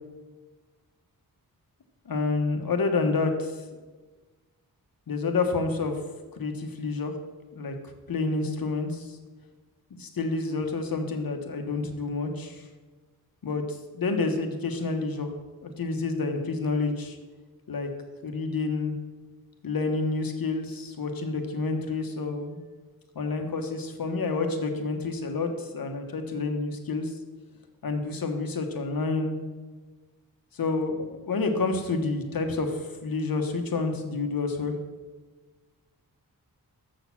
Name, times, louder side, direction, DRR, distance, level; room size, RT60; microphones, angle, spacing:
voice 1, 2.1-3.5 5.1-6.0 6.4-7.1 7.5-7.8 8.1-9.2 9.9-12.6 13.4-15.3 15.6-17.2 17.7-17.9 18.2-18.9 19.6-22.6 23.1-27.1 27.8-29.4 30.5-34.7, left 3 dB, 70° left, 5 dB, 1.2 m, -29 dB
7.2 x 6.5 x 5.9 m, 1.3 s
wide cardioid pair, 100°, 36 cm